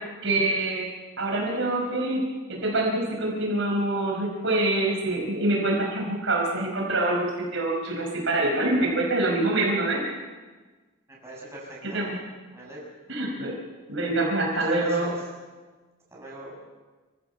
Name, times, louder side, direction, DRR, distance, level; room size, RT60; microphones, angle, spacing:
voice 1, 0.2-0.9 1.2-2.2 2.5-10.0 11.8-12.1 13.1-13.5 13.9-15.2, right 2 dB, 60° right, -1 dB, 5.2 m, -25 dB
voice 2, 11.2-12.0 12.5-12.8 14.6-15.2 16.1-16.5, right 2 dB, 15° right, -5 dB, 7.0 m, -40 dB
26.0 x 16.0 x 7.1 m, 1.3 s
head